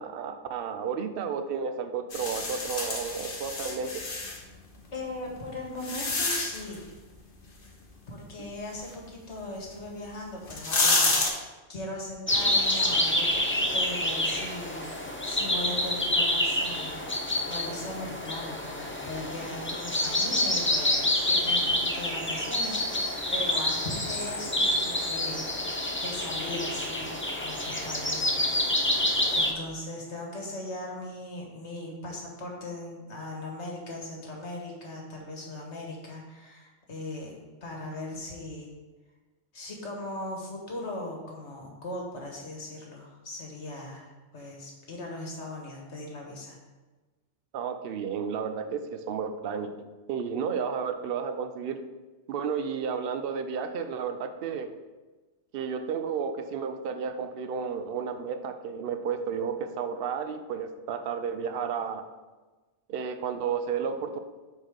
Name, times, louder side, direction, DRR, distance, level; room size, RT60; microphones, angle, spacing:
voice 1, 0.0-4.0 47.5-49.7 50.1-51.8 52.3-54.7 55.5-62.1 62.9-64.2, right 6 dB, 60° right, 8 dB, 0.7 m, -32 dB
sound 1, 2.1-4.4 5.2-6.8 9.8-9.9 10.4-11.3, left 3 dB, 50° left, 1.2 m, -28 dB
voice 2, 4.9-6.8 8.1-37.4 37.6-38.7 39.5-46.6, left 1 dB, 65° left, -1 dB, 1.7 m, -39 dB
sound 2, 12.3-29.5, left 1 dB, 15° left, 0.4 m, -28 dB
5.0 x 4.5 x 6.1 m, 1.2 s
omnidirectional pair, 1.3 m